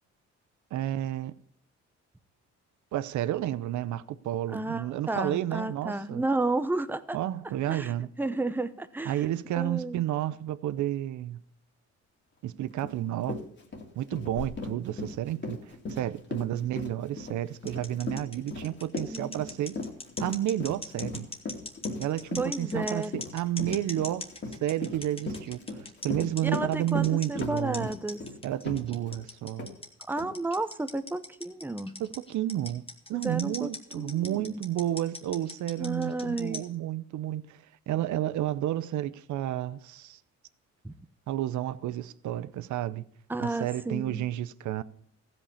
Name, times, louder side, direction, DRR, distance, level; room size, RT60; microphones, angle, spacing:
voice 1, 0.7-1.3 2.9-6.2 7.1-8.1 9.0-11.4 12.4-13.4 13.9-19.8 20.2-21.3 22.0-27.9 28.4-29.7 32.0-32.8 33.1-40.2 41.3-43.0 43.4-44.8, right 13 dB, 75° right, 0.7 m, -31 dB
voice 2, 4.5-7.2 7.7-7.9 8.2-9.3 9.6-10.0 19.0-19.5 22.4-23.1 26.4-28.2 30.1-32.0 33.1-34.6 35.8-36.6 40.8-40.9 43.3-44.2, right 2 dB, 5° right, 0.7 m, -32 dB
Run, 12.8-12.9 13.2-29.2 29.6-29.7 30.2-30.3, left 3 dB, 40° left, 2.3 m, -37 dB
sound 1, 14.3-25.7, left 5 dB, 75° left, 1.8 m, -54 dB
sound 2, 17.7-36.7, left 2 dB, 20° left, 1.7 m, -40 dB
15.0 x 5.4 x 7.0 m
cardioid pair, 90°, 30 cm